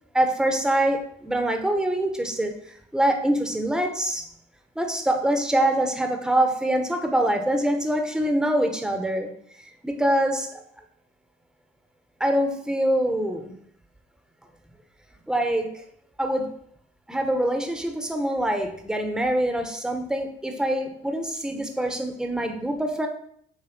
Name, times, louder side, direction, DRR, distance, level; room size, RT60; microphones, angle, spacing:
voice 1, 0.1-4.2 4.8-9.3 9.6-10.6 12.2-13.5 15.3-15.8 16.2-16.6 17.1-23.1, right 1 dB, 5° right, 5 dB, 1.0 m, -24 dB
7.2 x 3.1 x 6.0 m, 0.66 s
cardioid pair, 90°, 20 cm